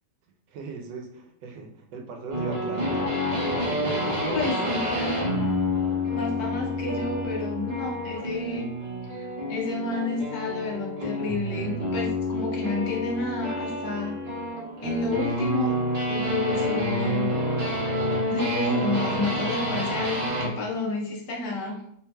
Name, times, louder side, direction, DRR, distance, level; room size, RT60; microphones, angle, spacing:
voice 1, 0.5-3.1 3.8-5.2, right 4 dB, 80° right, 4 dB, 1.2 m, -39 dB
sound 1, 2.3-20.5, left 1 dB, 60° right, 0.4 m, -28 dB
voice 2, 4.3-5.1 6.1-8.7 9.1-14.2 14.8-15.8 16.1-17.4 18.3-21.8, left 3 dB, 65° left, -2 dB, 1.2 m, -30 dB
3.3 x 3.0 x 2.2 m, 0.71 s
omnidirectional pair, 1.9 m